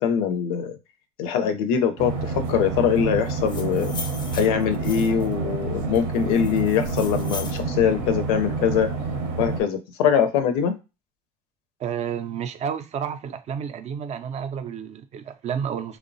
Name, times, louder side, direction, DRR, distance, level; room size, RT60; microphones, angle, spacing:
voice 1, 0.0-0.8 1.2-3.9 4.3-8.9 9.4-10.8, left 8 dB, 85° left, 0.5 m, -23 dB
sound 1, 2.0-9.6, right 4 dB, 85° right, 0.7 m, -28 dB
sound 2, 3.3-5.3 5.9-7.6, left 4 dB, 25° left, 0.4 m, -39 dB
voice 2, 11.8-16.0, right 8 dB, 40° right, 0.4 m, -30 dB
3.0 x 2.0 x 2.6 m
supercardioid pair, 95°, 18 cm